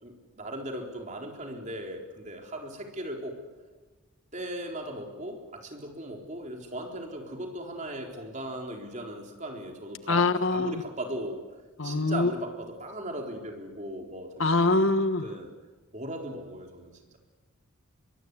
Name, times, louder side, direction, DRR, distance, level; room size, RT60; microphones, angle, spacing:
voice 1, 0.0-3.4 4.3-11.4 11.8-14.7 15.2-15.5 15.9-17.2, right 1 dB, 35° right, 2 dB, 4.0 m, -38 dB
voice 2, 10.1-10.7 11.8-12.3 14.4-15.2, left 3 dB, 65° left, 11 dB, 1.3 m, -24 dB
23.5 x 23.5 x 9.7 m, 1.3 s
head